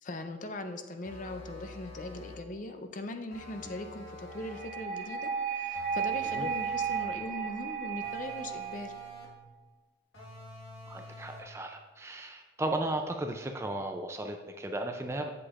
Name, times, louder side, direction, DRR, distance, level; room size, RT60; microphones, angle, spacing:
voice 1, 0.0-8.9, left 2 dB, 40° left, 7 dB, 0.5 m, -40 dB
sound 1, 1.0-2.5 3.3-4.8 5.7-7.2 8.0-9.5 10.1-11.6, equal, 80° left, 1.5 m, -48 dB
sound 2, 4.3-9.3, right 6 dB, 30° right, 1.3 m, -34 dB
voice 2, 10.9-15.3, right 1 dB, 15° right, 4 dB, 0.4 m, -35 dB
8.2 x 7.5 x 2.5 m, 1.2 s
head